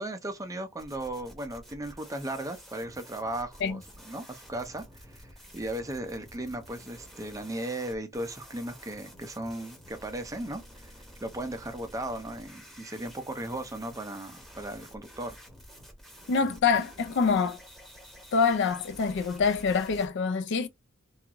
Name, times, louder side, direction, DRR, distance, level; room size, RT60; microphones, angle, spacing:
voice 1, 0.0-10.9 11.2-15.4, right 1 dB, 15° right, 0.5 m, -36 dB
dirty evil noise trash, 0.8-20.1, equal, ahead, 0.8 m, -50 dB
voice 2, 16.3-17.6 18.3-20.7, left 5 dB, 60° left, 0.4 m, -25 dB
2.5 x 2.3 x 2.8 m
head